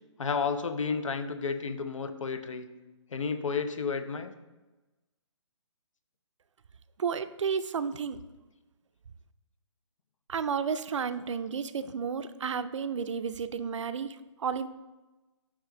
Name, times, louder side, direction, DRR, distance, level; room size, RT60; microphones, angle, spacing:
voice 1, 0.2-2.7 3.1-4.3, left 5 dB, 80° left, 9 dB, 0.7 m, -31 dB
voice 2, 7.0-8.2 10.3-14.7, right 6 dB, 70° right, 12 dB, 0.4 m, -32 dB
6.2 x 4.9 x 3.8 m, 1.1 s
hypercardioid pair, 170°, 16 cm